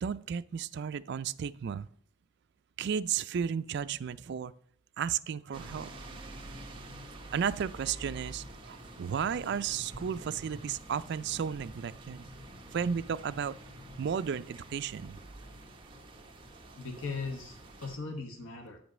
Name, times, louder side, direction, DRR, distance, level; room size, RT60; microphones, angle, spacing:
voice 1, 0.0-1.9 2.8-4.5 5.0-5.9 7.3-12.2 12.7-13.5 14.0-15.2, right 7 dB, 55° right, 13 dB, 0.3 m, -33 dB
sound 1, 5.5-18.0, right 1 dB, 25° right, 1.0 m, -47 dB
voice 2, 16.8-18.8, left 4 dB, 70° left, 3 dB, 1.0 m, -39 dB
8.6 x 5.2 x 6.1 m, 0.62 s
head